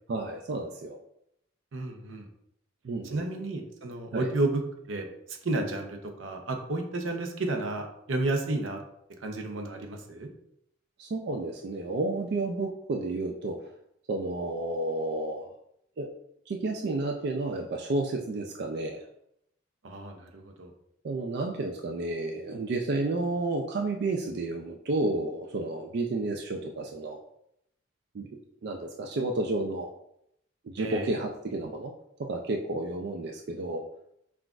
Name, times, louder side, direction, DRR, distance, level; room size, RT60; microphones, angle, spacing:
voice 1, 0.1-1.0 2.8-3.4 4.1-4.3 11.0-13.7 14.1-15.5 16.0-16.1 16.5-19.0 21.0-27.2 28.1-28.3 28.6-29.9 30.6-31.9 32.2-33.8, right 2 dB, 55° right, 2 dB, 0.4 m, -31 dB
voice 2, 1.7-2.3 3.1-4.5 4.9-5.1 5.4-8.8 9.2-10.3 19.8-20.7 30.8-31.1, right 2 dB, 90° right, 4 dB, 0.7 m, -32 dB
5.7 x 2.4 x 2.4 m, 0.75 s
head